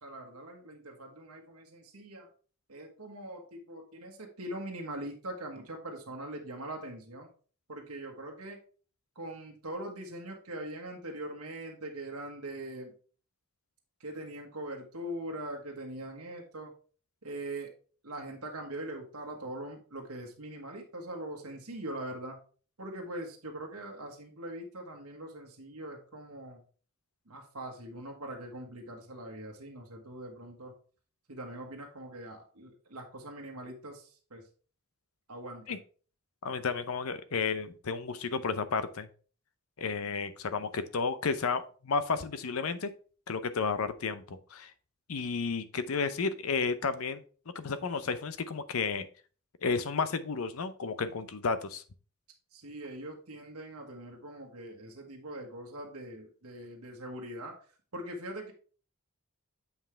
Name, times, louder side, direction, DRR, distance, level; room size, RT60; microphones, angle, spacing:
voice 1, 0.0-2.3 2.7-7.3 7.7-8.6 9.1-12.9 14.0-16.7 17.2-17.7 18.0-22.4 22.8-26.6 27.3-30.7 31.3-34.4 35.3-35.8 52.5-57.6 57.9-58.5, right 1 dB, 75° right, 1 dB, 1.4 m, -42 dB
voice 2, 36.4-39.1 39.8-42.9 43.3-44.7 45.1-47.2 47.5-49.1 49.6-51.8, left 5 dB, 70° left, 13 dB, 0.6 m, -32 dB
7.2 x 5.6 x 3.3 m, 0.40 s
head